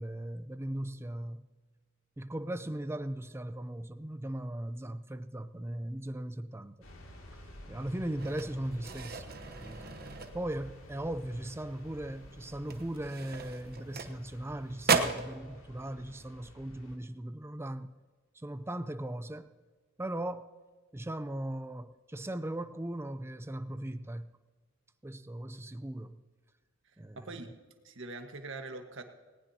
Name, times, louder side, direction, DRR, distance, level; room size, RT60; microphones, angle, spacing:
voice 1, 0.0-1.4 2.2-6.8 7.3-9.3 9.6-10.0 10.3-17.9 18.3-19.5 20.0-20.5 20.9-24.4 25.0-26.2 27.0-27.4, right 1 dB, 10° right, 0.5 m, -38 dB
sound 1, 6.8-17.0, equal, 80° left, 2.5 m, -51 dB
sound 2, 8.2-10.8 11.2-11.5 11.8-12.0 12.6-14.5 14.8-15.3, right 5 dB, 50° right, 1.0 m, -34 dB
voice 2, 27.2-27.5 27.8-29.0, right 3 dB, 65° right, 1.5 m, -42 dB
19.0 x 19.0 x 2.8 m
head